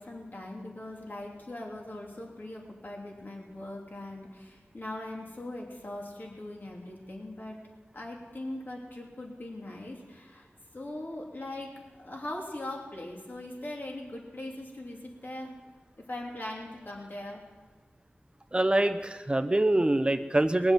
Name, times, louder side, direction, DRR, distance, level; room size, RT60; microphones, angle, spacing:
voice 1, 0.0-7.6 7.9-10.5 10.7-15.6 16.0-17.4, left 1 dB, 55° left, -1 dB, 3.2 m, -40 dB
voice 2, 18.5-20.7, right 1 dB, 25° right, 8 dB, 0.6 m, -24 dB
20.5 x 7.7 x 7.5 m, 1.4 s
wide cardioid pair, 50°, 4 cm